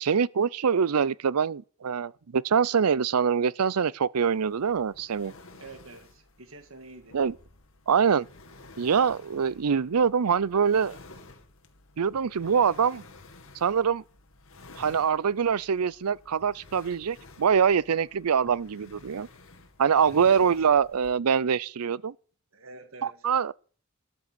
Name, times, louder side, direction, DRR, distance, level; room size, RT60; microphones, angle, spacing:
voice 1, 0.0-5.3 7.1-7.3 7.9-8.3 8.8-11.0 12.0-13.0 13.5-14.0 14.8-19.3 19.8-22.1 23.2-23.5, right 6 dB, 90° right, 0.5 m, -24 dB
sound 1, 4.2-21.2, left 2 dB, 60° left, 2.0 m, -52 dB
voice 2, 5.5-7.2 20.2-20.5 22.5-23.3, right 2 dB, 65° right, 1.8 m, -47 dB
13.0 x 7.7 x 8.3 m
head